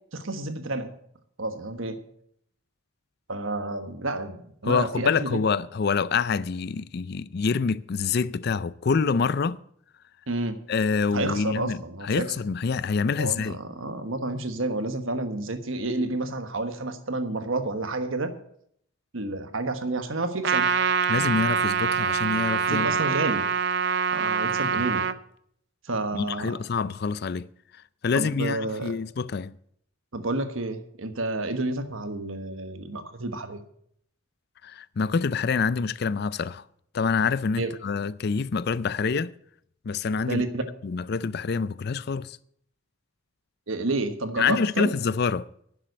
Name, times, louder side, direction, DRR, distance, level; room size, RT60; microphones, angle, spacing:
voice 1, 0.1-0.9 1.4-2.0 3.3-5.4 10.3-10.6 11.1-12.3 13.2-18.3 19.1-20.7 22.7-23.5 24.1-25.1 25.8-26.6 28.1-28.9 30.1-33.6 37.6-37.7 40.2-40.6 43.7-44.9, right 2 dB, 70° right, 1.3 m, -30 dB
voice 2, 4.6-9.6 10.7-11.8 12.0-13.6 21.1-22.9 24.5-24.9 26.1-27.5 28.0-29.5 34.6-36.6 36.9-39.3 39.8-40.4 40.8-42.4 44.4-45.5, left 5 dB, 50° left, 0.4 m, -26 dB
Trumpet, 20.4-25.1, right 6 dB, 55° right, 0.5 m, -24 dB
11.0 x 7.5 x 8.2 m
head